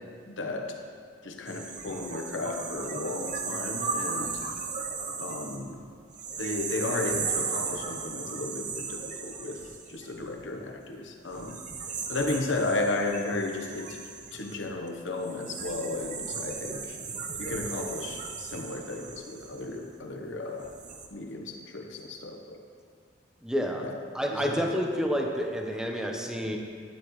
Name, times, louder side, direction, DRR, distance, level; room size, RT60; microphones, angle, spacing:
voice 1, 0.3-0.8 1.2-4.4 5.2-5.8 6.4-11.6 12.1-14.0 14.3-17.0 17.4-20.7 21.1-22.6 23.8-24.0 24.3-24.8 26.5-26.6, left 2 dB, 80° left, 2 dB, 1.0 m, -34 dB
sound 1, 1.5-10.7 11.3-20.0 20.5-21.1, right 5 dB, 40° right, 0.7 m, -36 dB
voice 2, 23.4-23.9 24.1-26.6, equal, 5° right, 1 dB, 0.8 m, -29 dB
11.5 x 9.2 x 3.1 m, 2.1 s
head